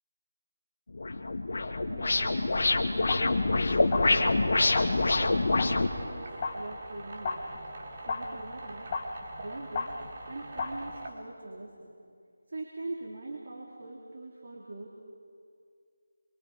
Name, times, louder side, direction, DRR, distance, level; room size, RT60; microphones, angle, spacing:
sound 1, 0.9-5.9, left 2 dB, 65° left, 1.7 m, -26 dB
voice 1, 1.9-7.5 8.0-8.9 9.4-9.9 10.3-11.9 12.5-14.9, right 2 dB, 55° right, -2 dB, 3.4 m, -42 dB
sound 2, 2.4-11.1, right 2 dB, 40° right, 2.8 m, -45 dB
sound 3, 3.0-3.5 3.8-10.3 10.5-11.0, left 4 dB, 30° left, 1.8 m, -37 dB
27.5 x 25.0 x 5.0 m, 2.2 s
figure-of-eight pair, 165°, 0 cm